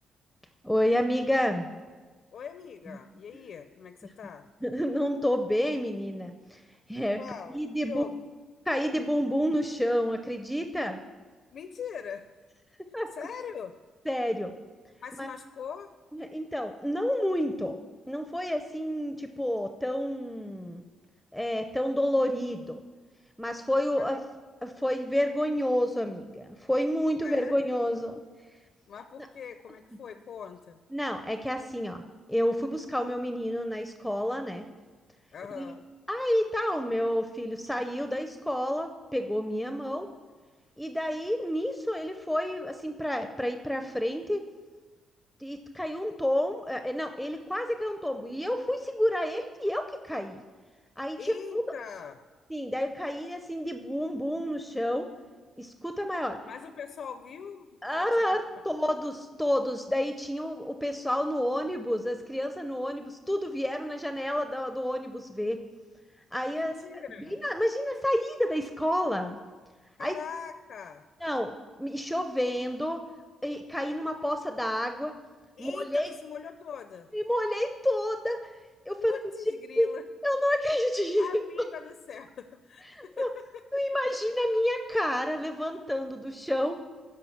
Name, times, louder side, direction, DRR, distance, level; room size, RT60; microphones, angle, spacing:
voice 1, 0.6-1.7 2.9-3.0 4.6-6.6 6.9-7.2 7.5-8.0 8.7-11.0 12.9-13.1 14.1-14.5 15.2-15.3 16.1-17.8 18.1-20.8 21.3-22.8 23.4-24.2 24.6-28.2 30.9-32.0 32.3-34.6 35.5-35.8 36.1-40.1 40.8-44.4 45.4-50.4 51.0-51.6 52.5-55.1 55.6-56.4 57.8-65.6 66.3-66.7 67.2-69.4 70.0-70.2 71.2-73.0 73.4-75.1 75.6-76.1 77.1-78.4 78.9-79.1 79.8-79.9 80.2-81.4 82.9-83.3 83.7-86.9, equal, ahead, 7 dB, 0.6 m, -29 dB
voice 2, 2.3-4.5 7.2-8.2 11.5-12.3 13.1-13.7 15.0-15.9 23.9-24.2 27.2-27.6 28.9-30.8 35.3-35.8 51.2-52.2 56.4-58.4 58.7-58.9 66.5-67.4 70.0-71.0 75.6-77.1 79.0-80.0 81.2-83.6, left 7 dB, 65° left, 10 dB, 0.6 m, -42 dB
13.0 x 4.9 x 7.1 m, 1.3 s
cardioid pair, 90°, 0 cm